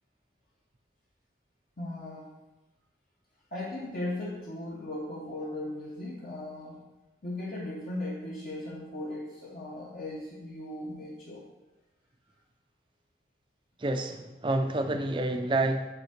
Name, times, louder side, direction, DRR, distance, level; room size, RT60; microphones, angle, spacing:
voice 1, 1.8-2.3 3.5-6.8 7.2-11.4, left 1 dB, 50° left, -5 dB, 0.8 m, -37 dB
voice 2, 13.8-15.9, right 2 dB, 25° right, 6 dB, 0.4 m, -28 dB
5.7 x 3.6 x 5.7 m, 1.1 s
head